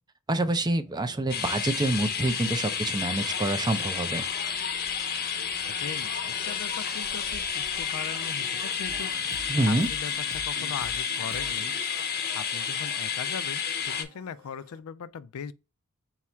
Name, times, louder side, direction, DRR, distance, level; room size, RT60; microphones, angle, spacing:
voice 1, 0.3-4.2 9.5-9.9, right 2 dB, 20° right, 0.5 m, -27 dB
Brass instrument, 0.8-10.3, equal, ahead, 1.1 m, -55 dB
sound 1, 1.3-14.0, left 7 dB, 45° left, 0.7 m, -31 dB
voice 2, 5.7-9.2 9.7-11.7 12.3-15.5, left 7 dB, 70° left, 0.4 m, -39 dB
sound 2, 8.9-14.8, right 1 dB, 60° right, 0.8 m, -48 dB
4.1 x 2.4 x 4.3 m
head